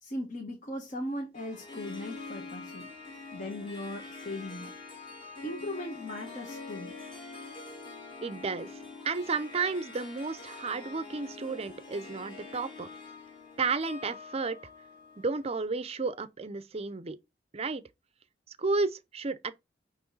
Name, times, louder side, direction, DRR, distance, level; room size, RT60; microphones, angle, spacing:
voice 1, 0.0-2.9 3.3-4.7 5.4-6.9, left 1 dB, 45° left, 1.5 m, -38 dB
Harp, 1.3-15.8, left 3 dB, 30° left, 1.8 m, -45 dB
voice 2, 8.2-8.7 9.0-12.9 13.6-14.6 15.2-17.2 17.5-17.8 18.6-19.5, right 4 dB, 35° right, 0.6 m, -32 dB
8.7 x 3.1 x 3.9 m
head